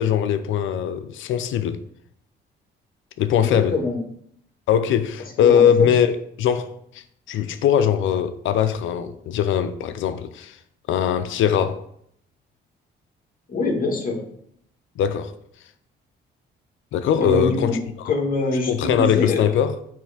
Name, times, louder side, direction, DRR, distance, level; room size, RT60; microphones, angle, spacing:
voice 1, 0.0-1.8 3.2-3.8 4.7-6.1 6.4-10.6 10.9-11.8 15.0-15.4 16.9-18.1 18.7-19.8, left 8 dB, 80° left, 0.6 m, -21 dB
voice 2, 3.5-4.0 5.4-5.6 13.5-14.2 17.2-17.8 18.1-19.5, left 2 dB, 45° left, 1.9 m, -24 dB
9.0 x 3.2 x 5.0 m
cardioid pair, 90°, 20 cm